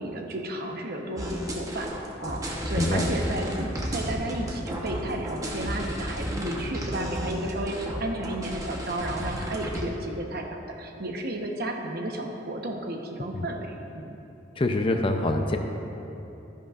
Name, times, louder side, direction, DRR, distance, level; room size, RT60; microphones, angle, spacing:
voice 1, 0.0-1.9 2.2-14.2, right 1 dB, 55° right, 2 dB, 0.9 m, -33 dB
sound 1, 1.2-9.8, equal, 20° right, 1.0 m, -33 dB
voice 2, 2.8-3.1 13.3-13.5 14.6-15.6, left 2 dB, 30° left, 4 dB, 0.5 m, -25 dB
13.0 x 10.5 x 2.5 m, 3.0 s
head